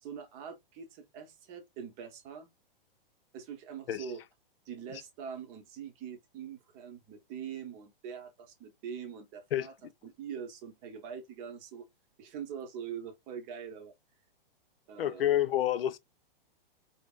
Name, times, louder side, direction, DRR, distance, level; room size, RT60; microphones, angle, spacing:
voice 1, 0.0-2.5 3.3-4.2 4.6-9.7 10.0-11.9 12.2-13.9 14.9-15.3, right 7 dB, 30° right, 0.7 m, -43 dB
voice 2, 15.0-16.0, left 12 dB, 80° left, 0.5 m, -28 dB
3.4 x 2.0 x 2.3 m
hypercardioid pair, 130°, 29 cm